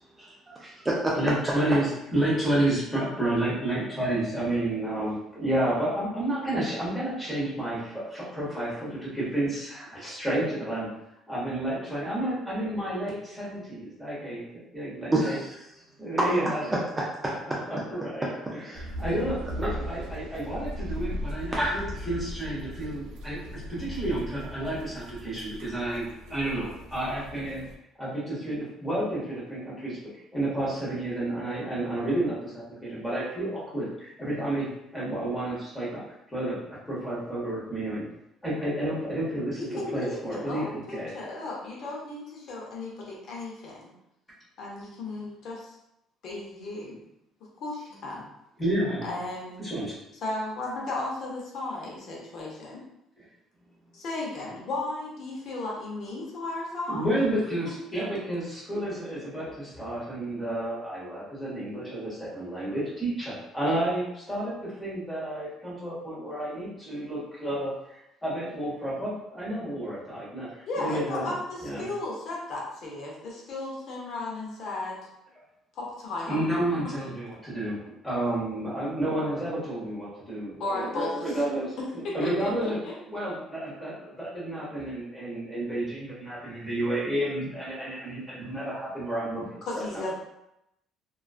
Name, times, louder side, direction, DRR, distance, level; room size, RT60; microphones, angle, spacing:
voice 1, 0.2-1.2 15.1-15.5 16.2-16.3 17.0-17.6 18.2-18.3 18.7-18.8 21.5-21.7, right 1 dB, 15° right, -5 dB, 0.3 m, -28 dB
voice 2, 1.1-10.9 11.3-14.5 14.7-15.4 16.0-16.8 17.7-23.4 23.7-27.7 28.0-30.0 30.3-34.7 34.9-36.0 36.3-36.6 36.9-38.1 38.4-41.1 48.6-49.1 49.6-49.9 53.2-53.3 56.9-67.7 68.2-71.3 71.6-71.9 76.3-82.8 83.1-90.0, right 1 dB, 5° left, -8 dB, 1.0 m, -30 dB
sound 1, 18.7-27.7, equal, 85° right, 0.4 m, -38 dB
voice 3, 39.6-43.8 44.6-45.7 46.2-47.0 47.6-48.2 49.0-49.7 50.2-52.8 53.9-57.1 70.7-75.0 75.8-76.4 80.6-81.4 82.0-82.9 89.7-90.1, left 2 dB, 55° left, -3 dB, 0.6 m, -35 dB
2.3 x 2.3 x 2.4 m, 0.84 s
cardioid pair, 145°, 0 cm